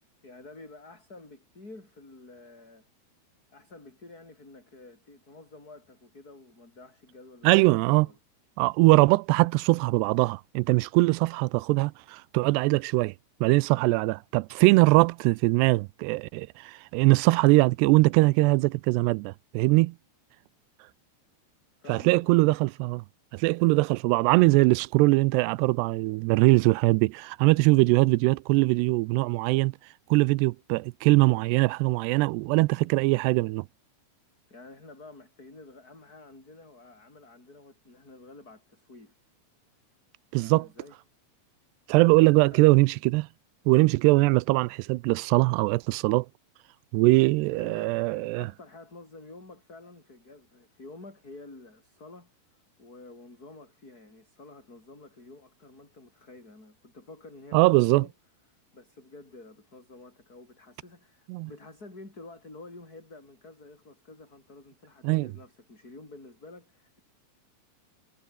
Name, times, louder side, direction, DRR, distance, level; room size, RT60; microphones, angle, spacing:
voice 1, 0.2-2.9 3.5-8.2 21.8-22.5 34.5-39.2 40.4-41.0 42.5-42.8 47.5-58.1 58.5-67.0, left 2 dB, 20° left, 7.4 m, -49 dB
voice 2, 7.4-8.1 8.6-13.1 13.4-20.0 21.9-23.0 23.3-29.7 30.1-33.7 40.3-40.7 41.9-43.3 43.7-46.3 46.9-48.5 57.5-58.1 61.3-61.5 65.0-65.3, right 23 dB, 90° right, 2.7 m, -22 dB
omnidirectional pair, 4.7 m